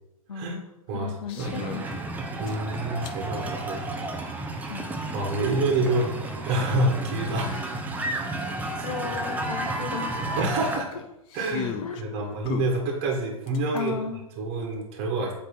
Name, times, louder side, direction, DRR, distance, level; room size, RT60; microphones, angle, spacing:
voice 1, 0.3-0.6 0.9-2.0 4.7-4.9 7.4-7.7 8.4-10.4 11.8-12.4 13.7-14.2, left 6 dB, 70° left, 5 dB, 0.7 m, -36 dB
voice 2, 0.9-1.6 2.4-3.9 5.1-6.1 6.5-7.5 8.8-9.1 10.4-10.9 11.3-13.9 14.4-15.3, right 2 dB, 35° right, 0 dB, 1.5 m, -27 dB
sound 1, 1.2-1.9 2.5-3.2 4.7-4.8 7.5-7.6 7.8-7.9 8.4-8.5 10.1-12.0 12.4-13.9, left 7 dB, 30° left, 0.6 m, -37 dB
sound 2, 1.4-10.8, right 2 dB, 10° right, 0.7 m, -32 dB
8.2 x 3.3 x 5.9 m, 0.91 s
figure-of-eight pair, 110°, 19 cm